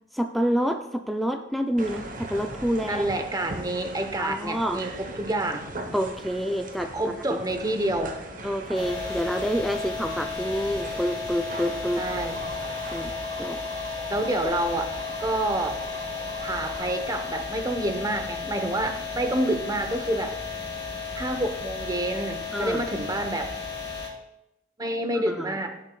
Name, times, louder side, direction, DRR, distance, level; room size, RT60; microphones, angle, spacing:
voice 1, 0.1-3.1 4.2-4.8 5.9-7.4 8.4-12.0 12.9-13.1 13.4-13.6 22.5-22.8 25.3-25.6, equal, ahead, 4 dB, 0.3 m, -28 dB
sound 1, 1.8-13.1, right 2 dB, 45° right, 0.9 m, -40 dB
voice 2, 2.9-5.7 6.9-8.1 12.0-12.4 14.1-14.9 15.2-15.8 16.4-20.6 21.1-23.5 24.8-25.8, right 1 dB, 20° right, 6 dB, 0.9 m, -28 dB
sound 2, 8.7-24.1, left 4 dB, 25° left, 2.5 m, -34 dB
sound 3, 11.8-17.5, right 2 dB, 80° right, 1.4 m, -41 dB
16.0 x 7.5 x 2.3 m, 0.88 s
head